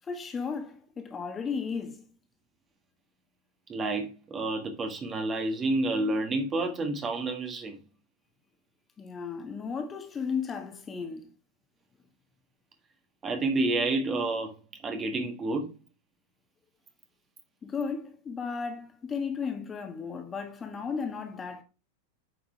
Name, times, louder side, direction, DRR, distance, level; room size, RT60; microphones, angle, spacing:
voice 1, 0.1-2.0 9.0-11.3 17.6-21.6, left 5 dB, 20° left, 1.7 m, -34 dB
voice 2, 3.7-7.8 13.2-14.5 14.8-15.7, right 2 dB, 20° right, 1.6 m, -29 dB
8.9 x 5.9 x 3.3 m
figure-of-eight pair, 90°, 0 cm